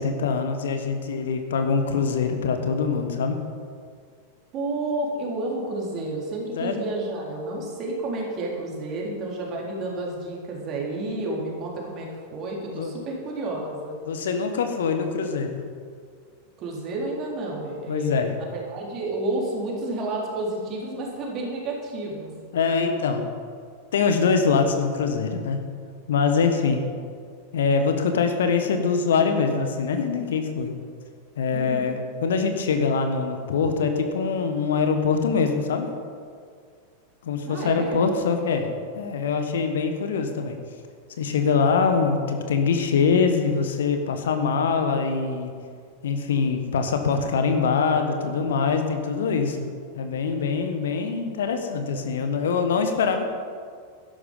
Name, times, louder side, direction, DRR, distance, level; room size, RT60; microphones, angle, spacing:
voice 1, 0.0-3.4 6.6-6.8 12.7-12.9 14.1-15.6 17.9-18.3 22.5-23.2 23.9-25.6 26.1-26.8 27.5-30.7 31.4-35.9 37.2-38.7 38.9-40.6 41.2-45.5 46.0-49.7 49.9-53.2, left 5 dB, 60° left, 6 dB, 1.2 m, -23 dB
voice 2, 4.5-13.9 16.6-22.3 31.5-31.9 37.5-38.0, right 2 dB, 35° right, -2 dB, 3.8 m, -30 dB
12.5 x 11.0 x 5.5 m, 2.1 s
figure-of-eight pair, 90°, 0 cm